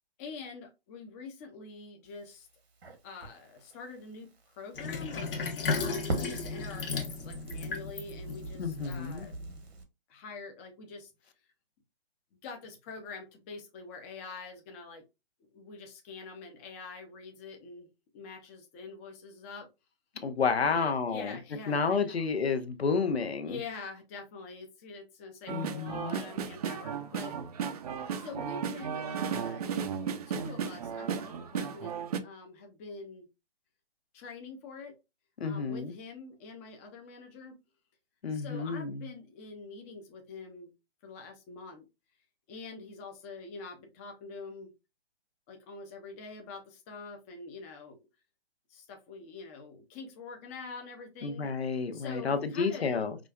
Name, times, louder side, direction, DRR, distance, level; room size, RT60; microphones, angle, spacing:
voice 1, 0.2-2.5 3.0-5.3 6.1-9.3 10.1-11.1 12.4-15.0 15.5-17.9 18.1-19.7 20.6-22.3 23.4-27.4 28.1-29.7 30.3-33.3 34.1-34.9 35.4-37.6 38.3-40.7 41.0-41.8 42.5-44.7 45.5-48.0 48.7-51.5 51.9-53.1, left 4 dB, 15° left, 0.4 m, -45 dB
Crackle, 2.0-9.8, right 2 dB, 80° right, 1.3 m, -43 dB
Sink (filling or washing), 4.7-9.5, left 4 dB, 60° left, 1.1 m, -35 dB
voice 2, 8.6-9.3 20.2-21.4 21.7-23.6 25.5-26.2 35.4-35.9 38.2-39.0 51.2-53.2, left 5 dB, 85° left, 0.8 m, -30 dB
sound 1, 25.5-32.2, right 7 dB, 40° right, 0.5 m, -35 dB
4.9 x 2.3 x 2.3 m
hypercardioid pair, 135°, 31 cm